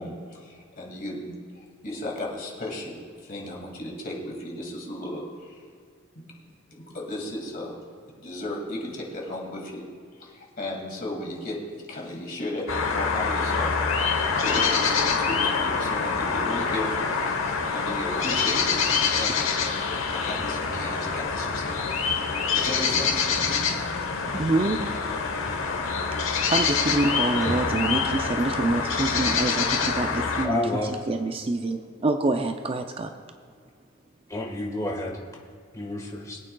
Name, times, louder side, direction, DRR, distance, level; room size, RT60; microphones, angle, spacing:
voice 1, 0.0-3.0 3.2-5.6 6.2-6.3 6.7-7.8 8.1-9.9 10.2-11.6 11.9-13.7 14.3-16.9 17.2-19.5 19.8-21.9 22.5-23.2, left 1 dB, 45° left, 0 dB, 2.2 m, -35 dB
sound 1, 12.7-30.5, left 5 dB, 75° left, 1.0 m, -26 dB
sound 2, 13.2-22.5 22.8-26.2 26.5-28.4, equal, ahead, 1.2 m, -44 dB
voice 2, 24.3-24.8 26.5-30.6 31.1-33.1, right 2 dB, 30° right, 6 dB, 0.4 m, -26 dB
voice 3, 30.4-31.1 34.3-35.2 35.7-36.4, left 2 dB, 15° left, -1 dB, 1.4 m, -30 dB
22.0 x 8.8 x 2.3 m, 2.2 s
head